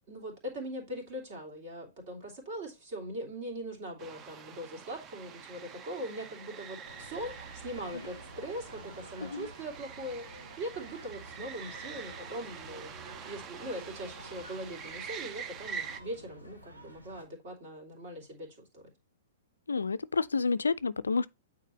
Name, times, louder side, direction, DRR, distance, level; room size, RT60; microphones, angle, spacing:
voice 1, 0.1-18.5 18.7-18.8, right 1 dB, 45° right, 2.7 m, -41 dB
sound 1, 4.0-16.0, right 7 dB, 25° right, 0.5 m, -45 dB
sound 2, 6.8-17.2, right 1 dB, 85° right, 1.6 m, -51 dB
voice 2, 19.7-21.3, left 4 dB, 75° left, 0.3 m, -29 dB
9.0 x 3.9 x 3.0 m
figure-of-eight pair, 110°, 0 cm